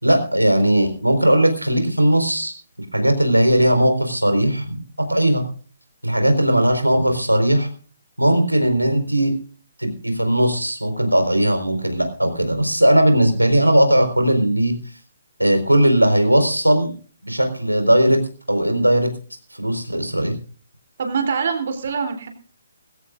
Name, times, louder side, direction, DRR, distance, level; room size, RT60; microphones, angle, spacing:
voice 1, 0.0-2.5 2.9-4.7 5.1-5.4 6.0-7.7 8.2-9.4 9.8-14.8 15.4-16.9 17.2-18.2 18.5-19.1 19.6-20.3, right 1 dB, 85° right, 6 dB, 4.5 m, -18 dB
voice 2, 21.0-22.3, right 5 dB, 45° right, 6 dB, 3.3 m, -24 dB
21.5 x 16.5 x 2.5 m, 0.40 s
figure-of-eight pair, 135°, 0 cm